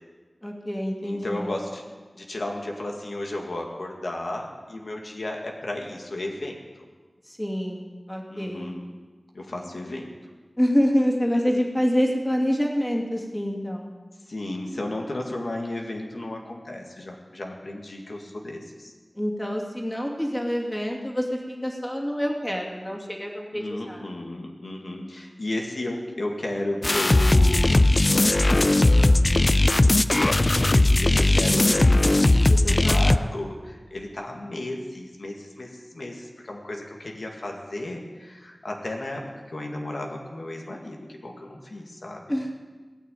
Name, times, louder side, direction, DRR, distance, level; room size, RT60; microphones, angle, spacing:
voice 1, 0.4-1.5 7.3-8.7 10.6-13.9 19.2-24.0 32.5-33.3 42.3-42.5, equal, 15° left, -1 dB, 2.4 m, -27 dB
voice 2, 1.0-1.8 2.1-6.6 8.3-8.8 9.3-10.1 14.3-18.9 23.5-27.9 28.7-29.7 30.7-42.2, left 1 dB, 85° left, 0 dB, 1.9 m, -34 dB
sound 1, 26.8-33.2, left 2 dB, 45° left, 0.5 m, -18 dB
18.5 x 6.6 x 9.2 m, 1.4 s
wide cardioid pair, 65°, 0 cm